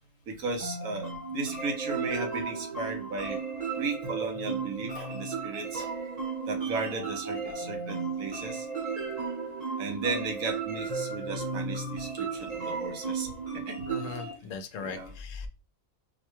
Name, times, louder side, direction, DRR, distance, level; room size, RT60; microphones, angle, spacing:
voice 1, 0.3-3.4 3.8-5.9 6.5-8.7 9.8-13.8 14.8-15.1, right 3 dB, 80° right, 1.3 m, -35 dB
sound 1, 0.6-14.3, right 4 dB, 35° right, 0.9 m, -34 dB
voice 2, 13.8-15.5, left 4 dB, 70° left, 0.9 m, -40 dB
4.4 x 2.2 x 3.0 m
omnidirectional pair, 1.5 m